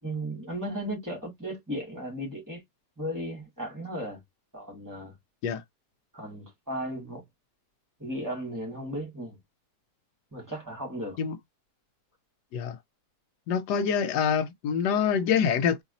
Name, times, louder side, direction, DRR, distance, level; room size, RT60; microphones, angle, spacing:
voice 1, 0.0-2.6 3.0-4.2 4.5-5.1 6.1-7.2 8.0-9.4 10.3-11.2, right 1 dB, 10° right, 2.2 m, -35 dB
voice 2, 13.5-15.8, left 7 dB, 90° left, 1.2 m, -25 dB
4.1 x 3.1 x 2.6 m
omnidirectional pair, 1.8 m